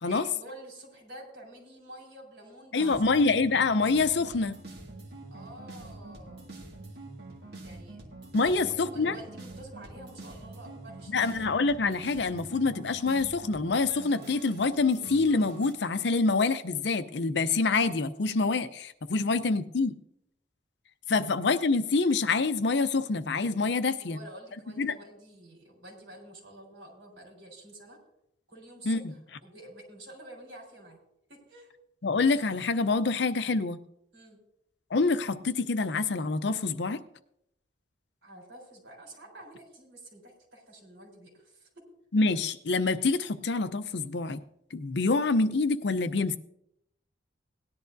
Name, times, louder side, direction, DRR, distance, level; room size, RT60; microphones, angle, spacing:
voice 1, 0.1-3.0 5.3-6.4 7.6-11.3 19.2-19.5 21.8-22.0 24.0-28.0 28.5-29.0 29.4-31.0 31.3-31.7 34.1-34.4 38.2-41.8, right 1 dB, 75° right, 1 dB, 4.2 m, -49 dB
voice 2, 2.7-4.6 8.3-9.1 11.1-20.0 21.1-24.2 24.8-24.9 28.9-29.1 32.0-33.8 34.9-37.0 42.1-44.4 44.7-46.4, left 3 dB, 65° left, 12 dB, 0.6 m, -26 dB
sound 1, 2.8-15.7, right 2 dB, 60° right, 1.9 m, -45 dB
18.0 x 10.5 x 2.6 m, 0.76 s
head